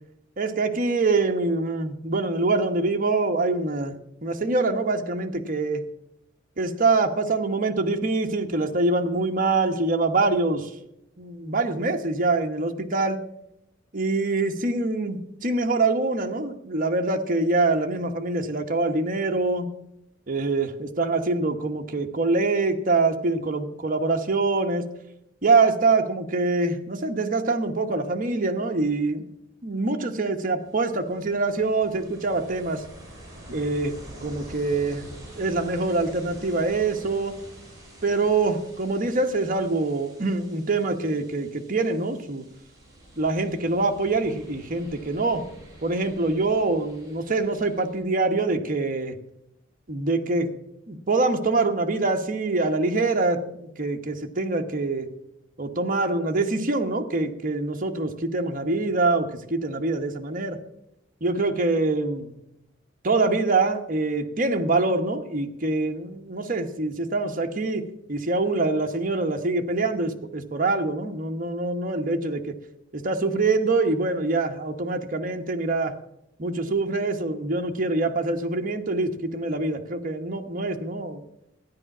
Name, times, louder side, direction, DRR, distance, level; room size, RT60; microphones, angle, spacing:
voice 1, 0.4-3.9 4.2-5.8 6.6-10.7 11.2-13.2 13.9-19.7 20.3-24.8 25.4-29.2 29.6-32.8 33.5-33.9 34.2-37.4 38.0-42.5 43.2-45.5 45.8-49.2 49.9-50.5 50.9-55.1 55.6-60.6 61.2-62.4 63.0-67.8 68.1-72.5 72.9-76.0 76.4-81.2, right 3 dB, 45° right, 4 dB, 1.1 m, -25 dB
Ocean, 30.6-48.0, right 1 dB, 20° right, 4.9 m, -47 dB
13.0 x 10.0 x 6.0 m, 0.82 s
head